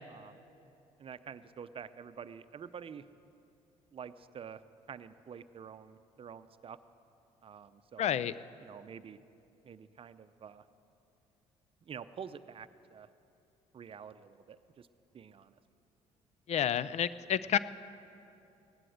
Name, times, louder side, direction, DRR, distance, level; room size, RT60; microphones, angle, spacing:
voice 1, 0.1-0.4 1.0-3.1 3.9-4.6 4.9-6.8 7.4-8.1 8.6-9.2 9.6-10.7 11.9-13.1 13.7-14.9 15.1-15.6, right 7 dB, 45° right, 13 dB, 0.6 m, -48 dB
voice 2, 8.0-8.3 16.5-17.6, left 9 dB, 55° left, 17 dB, 0.5 m, -29 dB
16.5 x 11.0 x 6.5 m, 2.7 s
supercardioid pair, 70°, 14 cm